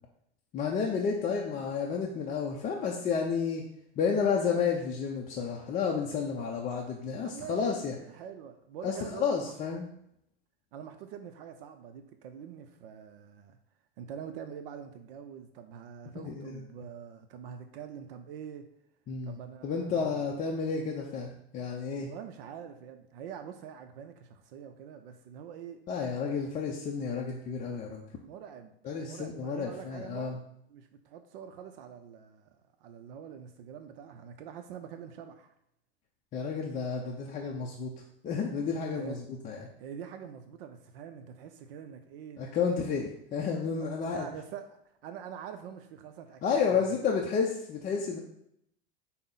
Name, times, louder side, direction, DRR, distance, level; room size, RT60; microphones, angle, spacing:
voice 1, 0.5-3.6 4.0-8.0 8.8-9.9 16.1-16.6 19.1-19.4 19.6-22.1 25.9-28.0 28.8-30.4 36.3-37.9 38.2-39.6 42.4-44.3 46.4-48.2, left 6 dB, 25° left, -1 dB, 0.5 m, -31 dB
voice 2, 7.2-9.6 10.7-13.6 14.0-18.7 19.2-20.4 22.1-25.8 28.2-30.4 30.7-32.5 32.8-35.5 38.9-39.2 39.8-42.5 43.8-44.7 45.0-46.4 46.7-46.9, right 8 dB, 65° right, 7 dB, 0.5 m, -45 dB
5.4 x 2.1 x 3.9 m, 0.77 s
hypercardioid pair, 100°, 31 cm